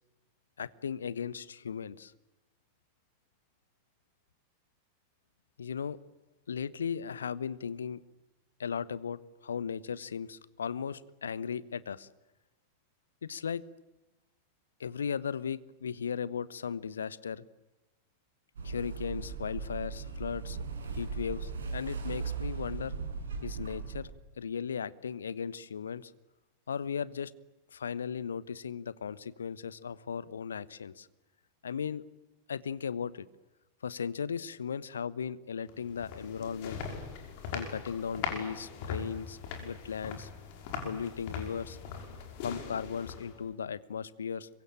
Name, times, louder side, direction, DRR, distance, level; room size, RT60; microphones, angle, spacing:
voice 1, 0.6-2.1 5.6-6.0 6.5-8.0 8.6-12.1 13.2-13.6 14.8-17.4 18.6-20.6 20.9-23.0 23.4-24.1 24.4-26.1 26.7-27.3 27.7-31.1 31.6-32.0 32.5-33.3 33.8-36.8 37.5-40.3 40.8-41.8 42.4-44.5, left 7 dB, 70° left, 19 dB, 1.1 m, -36 dB
sound 1, 18.6-24.0, right 5 dB, 65° right, 5.6 m, -38 dB
sound 2, 35.7-43.5, left 6 dB, 50° left, 5.7 m, -41 dB
26.0 x 23.0 x 9.0 m, 1.0 s
figure-of-eight pair, 90°, 0 cm